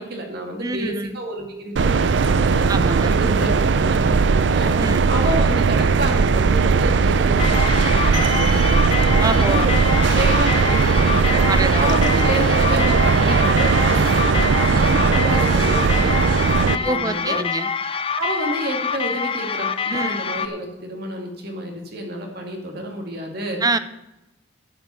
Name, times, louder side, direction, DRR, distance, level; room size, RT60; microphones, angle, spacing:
voice 1, 0.0-2.7 3.1-4.7 5.1-9.0 9.4-9.7 10.0-11.4 11.8-17.4 18.1-23.6, right 1 dB, 55° right, 1 dB, 2.4 m, -29 dB
voice 2, 0.6-1.2 2.7-3.1 4.8-5.1 9.2-9.7 11.5-11.9 16.8-17.7 19.9-20.2 23.6-23.8, right 3 dB, 20° right, 12 dB, 0.5 m, -25 dB
sound 1, 1.8-16.8, right 5 dB, 70° right, 0.5 m, -18 dB
sound 2, 7.4-20.5, left 6 dB, 30° left, 0.5 m, -26 dB
9.7 x 8.3 x 6.9 m, 0.94 s
head